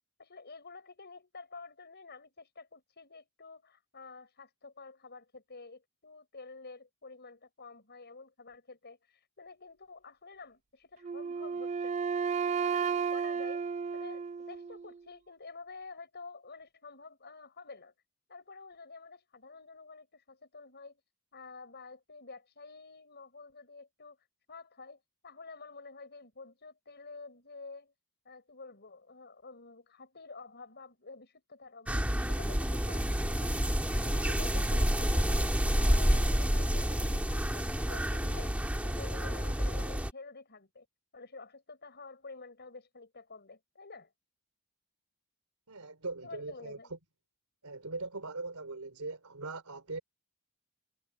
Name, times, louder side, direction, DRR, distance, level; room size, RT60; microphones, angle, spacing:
voice 1, 0.2-17.9 18.3-21.0 21.3-27.9 28.2-40.9 41.1-44.1 46.2-46.9, left 4 dB, 50° left, 6.0 m, -50 dB
Wind instrument woodwind instrument, 11.0-15.0, right 6 dB, 30° right, 0.4 m, -33 dB
sound 1, 31.9-40.1, equal, 5° right, 1.6 m, -29 dB
voice 2, 45.7-47.0 47.6-50.0, right 3 dB, 90° right, 3.6 m, -40 dB
head